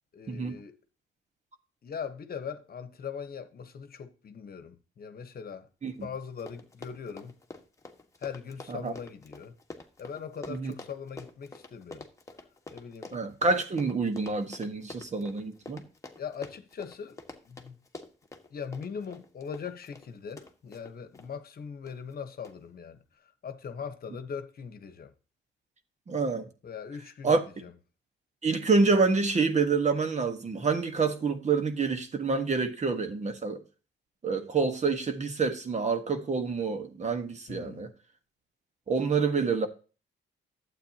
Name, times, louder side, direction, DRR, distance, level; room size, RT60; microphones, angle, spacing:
voice 1, 0.1-0.8 1.8-7.3 8.2-9.6 10.0-12.0 12.7-13.1 16.2-17.2 17.5-17.8 18.5-25.1 26.6-27.3 27.6-27.7 37.5-37.9, left 6 dB, 50° left, 1.2 m, -40 dB
Run, 6.0-6.1 6.3-21.3 21.9-22.1 22.4-22.5, left 2 dB, 15° left, 1.5 m, -47 dB
voice 2, 13.1-15.8 26.1-26.5 27.2-27.4 28.4-33.6 34.2-37.9 38.9-39.7, right 4 dB, 35° right, 1.4 m, -27 dB
11.5 x 8.3 x 2.9 m
cardioid pair, 90°, 20 cm